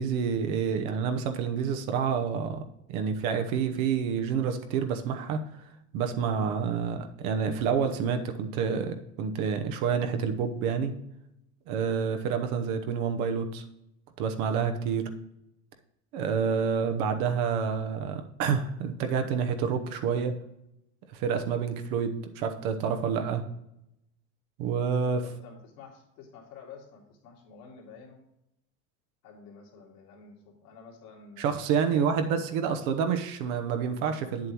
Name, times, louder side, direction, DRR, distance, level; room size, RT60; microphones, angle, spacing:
voice 1, 0.0-2.6 2.9-5.4 5.9-11.0 11.7-13.6 14.2-15.1 16.1-20.3 21.1-23.4 24.6-25.2 31.4-34.5, right 6 dB, 60° right, 7 dB, 1.1 m, -28 dB
voice 2, 24.9-28.2 29.2-32.4, left 5 dB, 70° left, -1 dB, 2.4 m, -50 dB
9.2 x 7.6 x 3.0 m, 0.85 s
hypercardioid pair, 85°, 47 cm